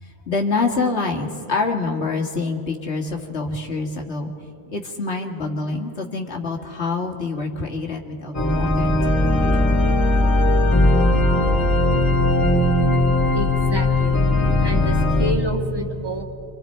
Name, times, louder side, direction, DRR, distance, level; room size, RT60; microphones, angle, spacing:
voice 1, 0.0-4.3 4.7-9.6, left 3 dB, 85° left, 1 dB, 2.1 m, -26 dB
sound 1, 8.3-15.3, left 2 dB, 15° left, 2.1 m, -18 dB
voice 2, 13.3-14.2 14.6-16.2, equal, 20° right, 0 dB, 2.1 m, -28 dB
28.5 x 25.5 x 4.5 m, 2.7 s
omnidirectional pair, 1.1 m